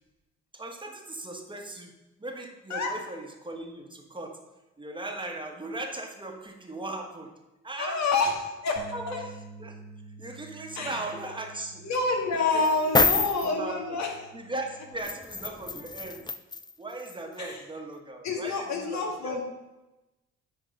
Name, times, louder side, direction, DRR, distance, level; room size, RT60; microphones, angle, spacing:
voice 1, 0.5-1.9 2.2-4.4 4.8-7.3 7.6-8.0 8.9-9.8 10.2-11.8 12.5-12.6 13.0-14.0 14.3-16.2 16.8-19.4, right 2 dB, 15° right, 3 dB, 1.4 m, -38 dB
voice 2, 7.8-9.2 10.7-11.0 11.8-14.1 17.4-17.6 18.2-19.4, left 3 dB, 65° left, 1 dB, 1.8 m, -28 dB
sound 1, 8.8-15.0, right 3 dB, 35° right, 1.1 m, -49 dB
sound 2, 12.7-13.5 15.0-16.7 17.1-17.2, left 4 dB, 15° left, 0.3 m, -26 dB
9.8 x 4.0 x 5.4 m, 1.0 s
cardioid pair, 90°, 30 cm